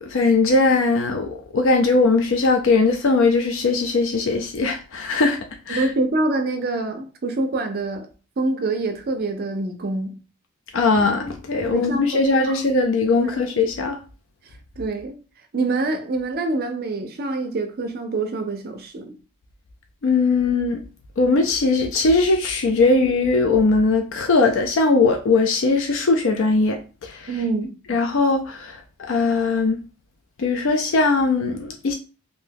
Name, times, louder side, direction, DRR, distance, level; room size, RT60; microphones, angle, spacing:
voice 1, 0.0-5.4 5.7-5.9 10.7-14.0 20.0-20.8 21.2-27.3 27.9-28.8 29.1-29.8 30.4-31.9, left 3 dB, 60° left, 0.4 m, -20 dB
voice 2, 5.7-8.1 8.4-10.2 11.7-12.6 13.2-13.3 14.8-15.2 15.5-19.2 27.3-27.8, right 2 dB, 45° right, 0.4 m, -25 dB
2.6 x 2.2 x 3.3 m
head